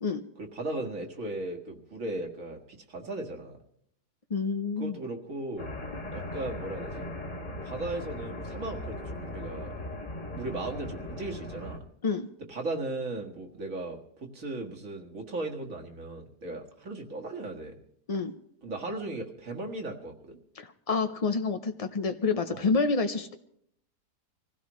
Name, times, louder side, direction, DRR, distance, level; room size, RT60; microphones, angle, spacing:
voice 1, 0.4-2.6 2.9-3.6 4.8-5.7 6.1-7.1 7.6-9.7 10.3-11.8 12.5-17.8 18.6-20.4 22.5-22.7, right 2 dB, 55° right, 2 dB, 2.1 m, -37 dB
voice 2, 4.3-5.0 12.0-12.3 18.1-18.3 20.6-23.3, left 4 dB, 75° left, 7 dB, 0.3 m, -28 dB
sound 1, 5.6-11.8, left 1 dB, 30° left, 1.8 m, -38 dB
25.0 x 16.0 x 3.1 m, 0.70 s
omnidirectional pair, 1.7 m